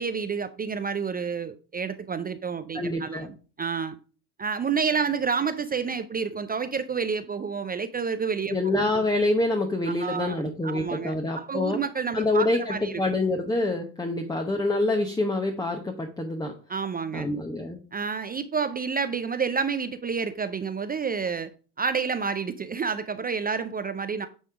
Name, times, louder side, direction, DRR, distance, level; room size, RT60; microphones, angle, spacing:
voice 1, 0.0-4.0 4.4-8.6 9.9-13.0 16.7-17.3 17.9-21.5 21.8-24.3, right 5 dB, 20° right, 0.4 m, -29 dB
voice 2, 2.7-3.3 8.5-11.8 12.1-16.5 17.1-17.8, left 2 dB, 10° left, 0.9 m, -26 dB
8.6 x 3.5 x 4.7 m
hypercardioid pair, 70°, 49 cm